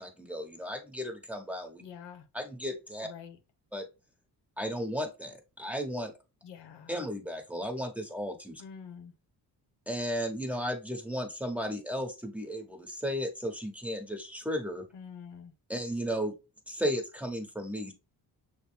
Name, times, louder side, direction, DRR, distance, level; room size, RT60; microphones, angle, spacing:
voice 1, 0.0-1.8 2.3-3.1 3.7-3.8 4.6-6.1 6.9-8.6 9.9-14.9 15.7-16.3 16.7-17.9, equal, 5° right, 1.1 m, -34 dB
voice 2, 1.8-2.3 3.0-3.4 6.4-6.9 8.6-9.1 14.9-15.5, left 7 dB, 85° left, 0.8 m, -46 dB
6.3 x 2.1 x 3.2 m
cardioid pair, 90°, 41 cm